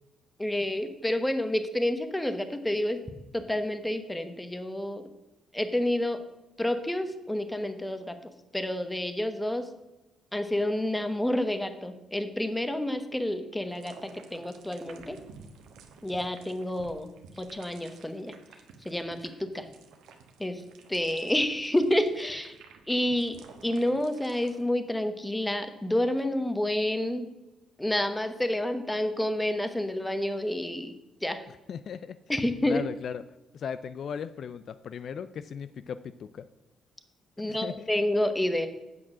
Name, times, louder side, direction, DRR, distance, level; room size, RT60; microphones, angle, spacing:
voice 1, 0.4-3.0 3.3-5.1 5.5-6.2 6.6-9.7 10.3-15.2 16.0-18.3 18.8-19.7 20.4-20.6 20.9-22.6 22.9-23.4 23.6-27.3 27.8-31.0 31.2-31.4 32.3-32.8 37.4-38.7, left 1 dB, 10° left, 9 dB, 1.0 m, -29 dB
sound 1, 13.7-24.6, right 5 dB, 85° right, 1.2 m, -53 dB
voice 2, 31.5-32.2 32.6-33.2 33.5-36.5 37.5-37.9, left 7 dB, 60° left, 13 dB, 0.4 m, -37 dB
8.9 x 6.0 x 6.1 m, 1.0 s
cardioid pair, 90°, 0 cm